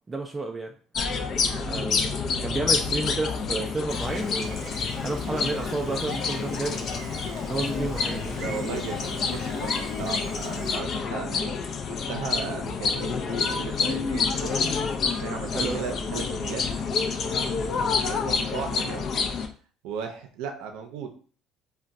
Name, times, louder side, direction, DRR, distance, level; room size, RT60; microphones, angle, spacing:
voice 1, 0.1-0.7 1.7-2.1 2.4-4.7 5.0-7.0 7.5-8.4 15.5-15.8, right 3 dB, 20° right, 2 dB, 0.3 m, -31 dB
sound 1, 0.9-19.5, left 5 dB, 50° left, 0.4 m, -28 dB
Gull seagull, 3.9-10.8, right 3 dB, 55° right, 0.8 m, -44 dB
voice 2, 8.4-11.5 11.9-14.6 15.0-16.6 17.2-19.2 19.8-21.1, right 7 dB, 85° right, 5 dB, 0.5 m, -36 dB
2.4 x 2.2 x 3.9 m, 0.41 s
cardioid pair, 105°, 0 cm